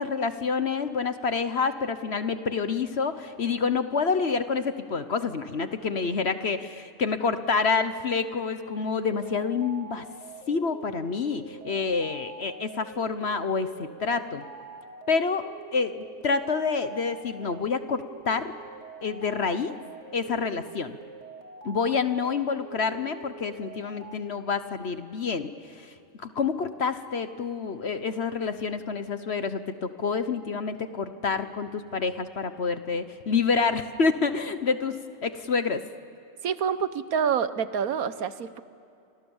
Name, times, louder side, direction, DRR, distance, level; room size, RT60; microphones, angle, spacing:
voice 1, 0.0-10.0 10.5-14.4 15.1-18.6 19.0-19.8 20.1-21.0 21.6-35.8, left 5 dB, 50° left, 10 dB, 1.2 m, -28 dB
sound 1, 9.0-24.2, right 5 dB, 50° right, 2.4 m, -45 dB
voice 2, 36.4-38.6, right 7 dB, 80° right, 13 dB, 1.5 m, -27 dB
29.5 x 26.5 x 7.2 m, 2.7 s
omnidirectional pair, 1.5 m